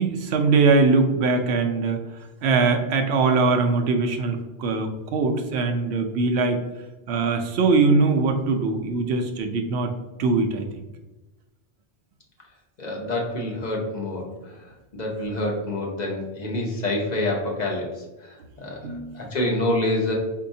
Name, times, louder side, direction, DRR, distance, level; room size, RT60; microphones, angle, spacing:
voice 1, 0.0-2.0 2.4-6.6 7.1-9.9 10.2-10.6 18.8-19.2, right 4 dB, 75° right, 5 dB, 0.8 m, -21 dB
voice 2, 12.8-14.5 14.9-18.8 19.1-20.1, left 1 dB, 45° left, -1 dB, 0.7 m, -27 dB
4.5 x 2.7 x 2.6 m, 1.1 s
omnidirectional pair, 1.1 m